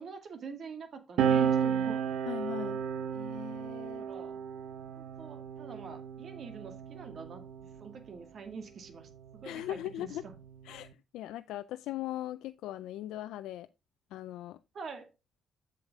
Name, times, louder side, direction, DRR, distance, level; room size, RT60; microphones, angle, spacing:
voice 1, 0.0-2.1 4.0-4.4 5.0-10.3 14.7-15.1, right 5 dB, 55° right, 2.1 m, -45 dB
sound 1, 1.2-8.1 9.1-10.9, right 7 dB, 80° right, 0.9 m, -33 dB
voice 2, 2.3-2.8 3.1-4.1 9.4-10.2 10.6-13.7 14.1-14.6, left 13 dB, 90° left, 0.4 m, -39 dB
8.0 x 6.9 x 3.6 m
cardioid pair, 90°, 0 cm